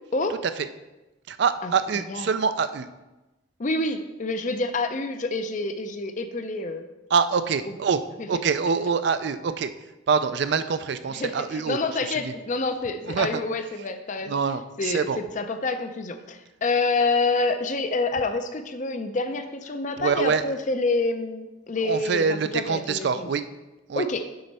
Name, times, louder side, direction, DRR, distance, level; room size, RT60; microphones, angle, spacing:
voice 1, 1.3-2.9 7.1-8.0 8.3-9.7 10.1-11.8 12.2-12.3 13.0-13.4 14.3-15.2 20.0-20.5 21.8-23.4 23.9-24.0, right 5 dB, 55° right, 11 dB, 0.4 m, -25 dB
voice 2, 3.6-6.9 8.2-8.3 11.1-14.4 14.8-23.3 24.0-24.2, left 3 dB, 40° left, 8 dB, 0.5 m, -27 dB
7.7 x 4.1 x 5.4 m, 1.1 s
head